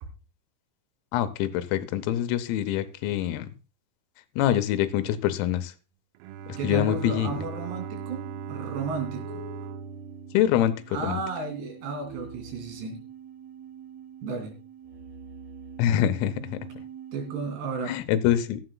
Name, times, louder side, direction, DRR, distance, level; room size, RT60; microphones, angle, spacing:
voice 1, 1.1-3.5 4.4-5.7 6.6-7.3 10.3-11.2 15.8-16.6 17.9-18.6, left 11 dB, 90° left, 3.6 m, -25 dB
Bowed string instrument, 6.2-11.4, right 6 dB, 90° right, 3.5 m, -39 dB
sound 1, 6.4-17.6, right 7 dB, 40° right, 3.1 m, -45 dB
voice 2, 6.6-9.4 10.9-13.0 14.2-14.6 17.1-17.9, right 4 dB, 60° right, 4.5 m, -33 dB
15.5 x 12.5 x 2.2 m
omnidirectional pair, 6.0 m